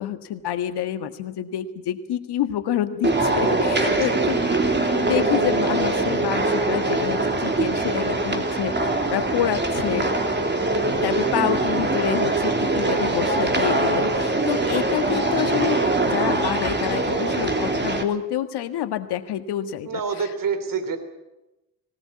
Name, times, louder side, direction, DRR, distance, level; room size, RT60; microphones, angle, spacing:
voice 1, 0.0-10.1 11.0-15.8 16.1-20.0, left 11 dB, 65° left, 10 dB, 1.7 m, -28 dB
sound 1, 3.0-18.0, right 2 dB, 25° right, 2.9 m, -22 dB
voice 2, 3.8-4.7 19.8-21.0, right 5 dB, 50° right, 10 dB, 3.2 m, -29 dB
19.0 x 18.5 x 8.5 m, 0.96 s
hypercardioid pair, 45°, 43 cm